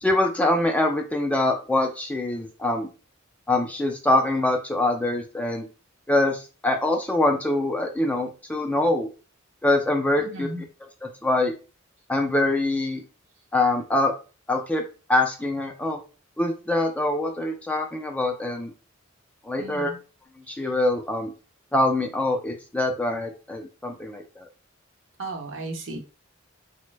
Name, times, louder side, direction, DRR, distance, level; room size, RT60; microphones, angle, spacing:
voice 1, 0.0-2.9 3.5-5.7 6.1-9.1 9.6-10.5 11.0-11.5 12.1-13.0 13.5-14.1 14.5-14.8 15.1-16.0 16.4-18.7 19.4-19.9 20.5-21.3 21.7-24.5, left 2 dB, 5° left, 3 dB, 0.3 m, -24 dB
voice 2, 10.2-10.6 19.6-20.0 25.2-26.0, right 2 dB, 65° right, 1 dB, 0.8 m, -35 dB
3.0 x 2.1 x 3.2 m, 0.34 s
head